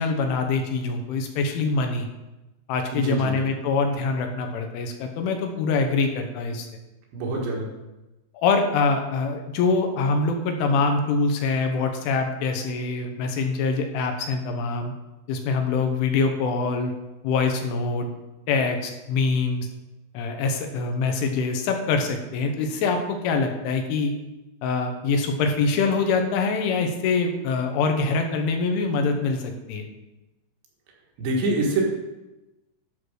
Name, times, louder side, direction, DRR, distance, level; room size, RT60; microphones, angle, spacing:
voice 1, 0.0-2.1 2.7-6.7 8.4-14.9 15.3-16.9 17.2-18.1 18.5-19.7 20.2-24.1 24.6-29.9, left 4 dB, 80° left, 4 dB, 3.5 m, -24 dB
voice 2, 2.9-3.4 7.1-7.7 31.2-31.8, right 2 dB, 65° right, -1 dB, 3.5 m, -25 dB
12.0 x 4.7 x 6.4 m, 1.0 s
omnidirectional pair, 5.7 m